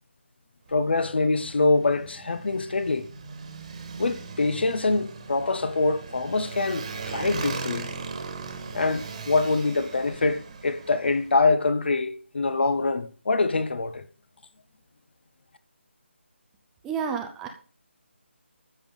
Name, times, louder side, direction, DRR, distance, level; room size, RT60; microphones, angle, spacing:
voice 1, 0.7-3.1 4.0-7.9 8.7-14.1, left 3 dB, 55° left, 1.3 m, -24 dB
Motorcycle, 0.7-11.4, right 4 dB, 30° right, 1.6 m, -38 dB
voice 2, 16.8-17.5, right 6 dB, 5° right, 0.5 m, -30 dB
13.0 x 7.5 x 5.4 m
figure-of-eight pair, 175°, 7 cm